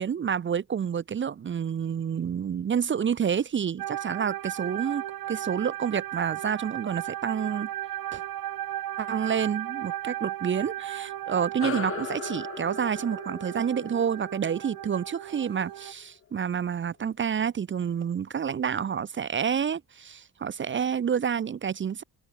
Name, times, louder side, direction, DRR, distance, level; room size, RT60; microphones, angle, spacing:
voice 1, 0.0-7.7 8.1-8.2 9.0-22.0, right 7 dB, 35° right, 0.6 m, -29 dB
sound 1, 3.8-15.9, right 13 dB, 70° right, 1.2 m, -36 dB
sound 2, 11.6-16.4, left 9 dB, 35° left, 0.6 m, -39 dB
cardioid pair, 115°, 36 cm